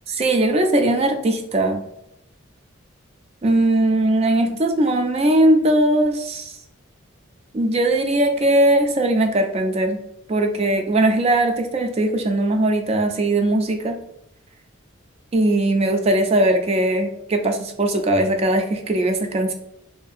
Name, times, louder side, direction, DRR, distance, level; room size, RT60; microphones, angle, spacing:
voice 1, 0.1-1.8 3.4-6.5 7.5-10.0 10.3-14.0 15.3-19.5, right 1 dB, 30° right, 5 dB, 0.3 m, -19 dB
2.7 x 2.5 x 2.4 m, 0.80 s
head